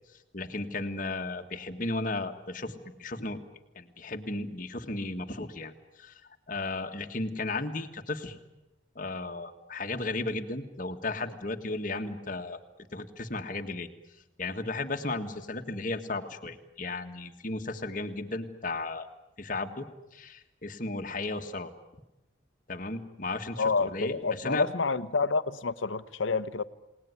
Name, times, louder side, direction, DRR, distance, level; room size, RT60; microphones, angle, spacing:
voice 1, 0.3-3.4 3.8-5.7 6.0-6.2 6.5-8.4 9.0-12.6 12.9-13.9 14.4-19.1 19.4-19.9 20.1-21.7 22.7-24.7, left 2 dB, 45° left, 1.8 m, -34 dB
voice 2, 23.6-26.6, left 4 dB, 85° left, 1.0 m, -28 dB
29.0 x 19.0 x 9.7 m
head